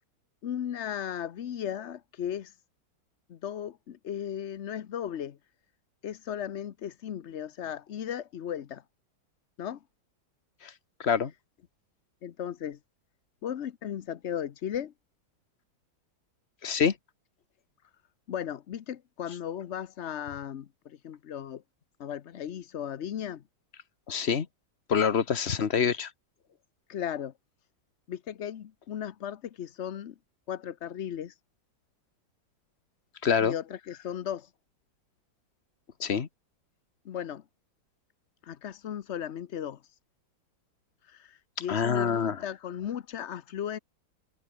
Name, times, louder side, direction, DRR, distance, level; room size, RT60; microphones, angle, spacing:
voice 1, 0.4-2.5 3.3-5.4 6.0-8.8 9.6-9.8 12.2-12.8 13.4-14.9 18.3-21.6 22.0-23.4 26.9-27.3 28.1-30.1 30.5-31.3 33.4-34.5 37.0-37.4 38.4-39.8 41.0-43.8, left 9 dB, 60° left, 0.7 m, -36 dB
voice 2, 11.0-11.3 16.6-16.9 24.1-24.5 24.9-26.1 33.2-33.5 36.0-36.3 41.7-42.4, left 7 dB, 40° left, 1.2 m, -26 dB
omnidirectional pair, 2.1 m